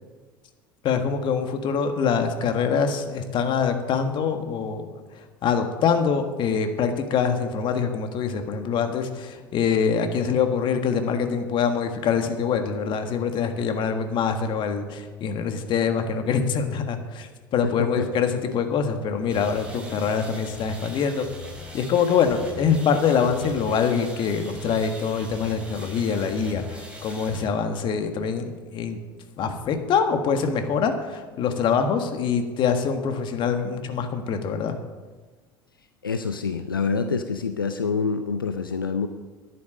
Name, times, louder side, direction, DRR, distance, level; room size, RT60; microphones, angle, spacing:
voice 1, 0.8-4.9 5.1-21.3 21.7-29.0 29.4-34.8, left 6 dB, 45° left, 7 dB, 1.5 m, -24 dB
voice 2, 17.6-18.1 36.0-39.1, left 5 dB, 90° left, 9 dB, 0.5 m, -26 dB
sound 1, 19.3-27.4, left 1 dB, 10° right, 4.9 m, -41 dB
11.0 x 9.5 x 6.5 m, 1.3 s
figure-of-eight pair, 70°, 11 cm